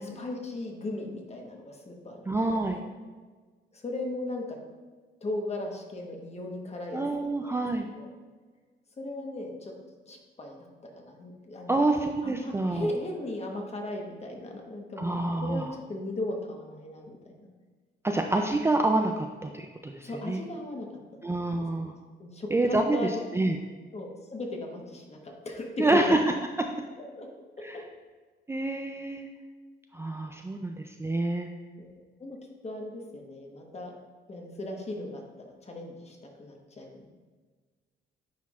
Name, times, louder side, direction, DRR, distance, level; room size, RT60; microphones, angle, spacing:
voice 1, 0.0-2.3 2.6-2.8 3.7-4.6 5.2-7.1 7.4-7.6 7.9-8.1 9.0-9.7 10.1-10.6 10.9-11.8 12.2-17.5 20.0-20.9 21.1-21.9 22.2-23.2 23.9-26.1 27.2-27.3 27.6-27.7 31.8-32.4 32.6-33.9 34.3-37.1, left 2 dB, 35° left, 1 dB, 1.2 m, -37 dB
voice 2, 2.3-2.8 6.9-7.9 11.7-12.9 15.0-15.7 18.0-20.4 21.2-22.0 22.5-23.6 25.8-26.2 27.6-27.8 28.5-29.3 29.9-31.5, right 2 dB, 15° right, 3 dB, 0.4 m, -27 dB
9.3 x 4.5 x 2.4 m, 1.4 s
cardioid pair, 90°, 20 cm